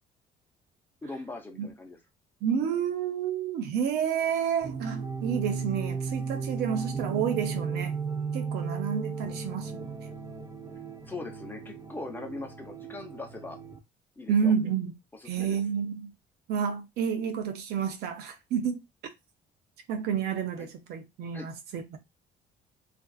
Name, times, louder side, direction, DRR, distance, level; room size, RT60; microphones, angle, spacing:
voice 1, 1.0-2.0 11.1-13.6 14.2-14.5 15.2-15.6 20.6-20.7 21.3-21.5, left 2 dB, 10° left, 0.7 m, -40 dB
voice 2, 2.4-7.9 8.3-10.0 14.3-14.9 15.2-16.1 16.5-18.8 19.9-22.0, right 7 dB, 75° right, 0.6 m, -30 dB
sound 1, 4.6-13.8, right 5 dB, 20° right, 0.5 m, -35 dB
2.5 x 2.4 x 2.3 m
cardioid pair, 110°, 17 cm